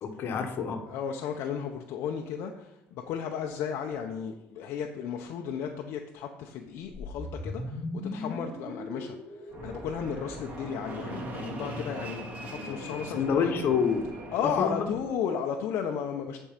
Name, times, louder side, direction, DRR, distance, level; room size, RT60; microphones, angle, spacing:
voice 1, 0.0-0.8 13.1-14.1 14.4-14.9, left 6 dB, 55° left, 6 dB, 1.3 m, -27 dB
voice 2, 0.9-7.8 8.1-13.6 14.3-16.4, left 7 dB, 70° left, 2 dB, 0.7 m, -34 dB
sound 1, 6.9-11.1, left 2 dB, 10° left, 1.3 m, -39 dB
Fixed-wing aircraft airplane, 9.5-15.1, right 1 dB, 35° right, 2.3 m, -40 dB
10.0 x 4.6 x 5.2 m, 0.89 s
cardioid pair, 105°, 4 cm